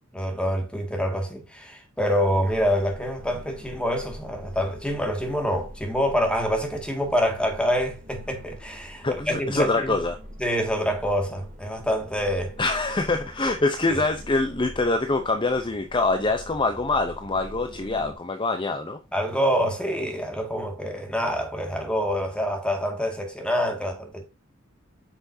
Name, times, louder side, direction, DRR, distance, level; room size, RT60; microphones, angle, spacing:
voice 1, 0.1-10.0 10.4-12.5 13.9-14.0 19.1-24.3, equal, 5° left, 2.0 m, -26 dB
sound 1, 2.2-18.2, equal, 40° right, 2.9 m, -44 dB
voice 2, 9.0-10.2 12.6-19.0, left 2 dB, 25° left, 0.7 m, -25 dB
8.1 x 6.1 x 2.7 m
head